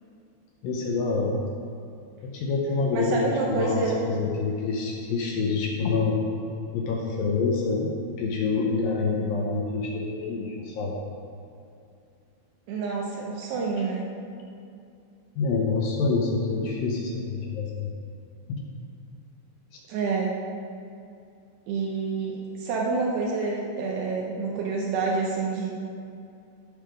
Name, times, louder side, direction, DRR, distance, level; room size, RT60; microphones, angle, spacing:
voice 1, 0.6-1.4 2.2-3.2 3.5-6.2 6.7-11.0 15.4-17.9 18.5-18.6 19.7-19.8, left 4 dB, 70° left, -1 dB, 2.4 m, -27 dB
voice 2, 2.9-4.0 12.7-14.1 19.9-20.3 21.7-25.7, right 4 dB, 80° right, -3 dB, 3.0 m, -28 dB
13.5 x 5.6 x 5.0 m, 2.5 s
omnidirectional pair, 4.7 m